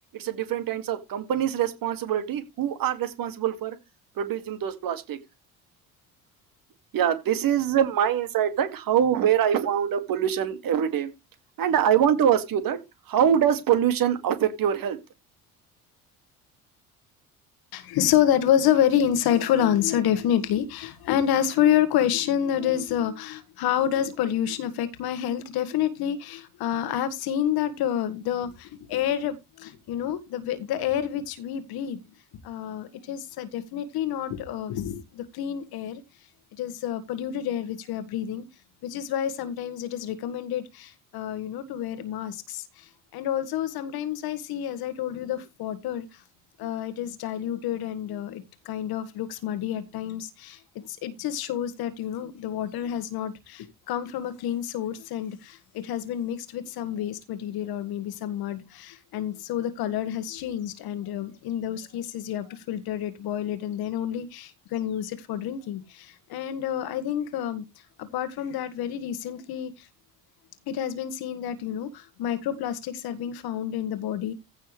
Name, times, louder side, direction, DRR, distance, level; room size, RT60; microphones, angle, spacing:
voice 1, 0.1-3.8 4.2-5.2 6.9-11.1 11.6-12.8 13.1-15.0, right 9 dB, 50° right, 2.2 m, -24 dB
voice 2, 17.7-32.0 32.4-36.0 36.6-38.4 38.8-46.1 46.6-50.6 50.9-67.6 68.0-69.9 70.7-74.3, left 10 dB, 55° left, 1.7 m, -28 dB
15.5 x 6.3 x 3.3 m
figure-of-eight pair, 55°, 45 cm